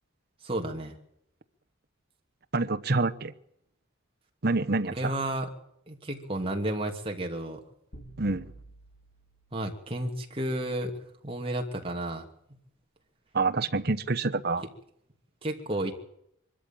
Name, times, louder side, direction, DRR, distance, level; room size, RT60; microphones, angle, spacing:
voice 1, 0.4-1.0 4.8-5.5 5.9-7.6 9.5-10.9 11.2-12.3 15.4-15.9, right 1 dB, 25° right, 2 dB, 2.7 m, -32 dB
voice 2, 2.5-3.3 4.4-5.2 8.2-8.5 13.3-14.7, right 3 dB, 50° right, 9 dB, 1.0 m, -27 dB
sound 1, 7.9-10.2, right 2 dB, 80° left, 3.9 m, -50 dB
23.5 x 13.5 x 9.0 m, 0.75 s
head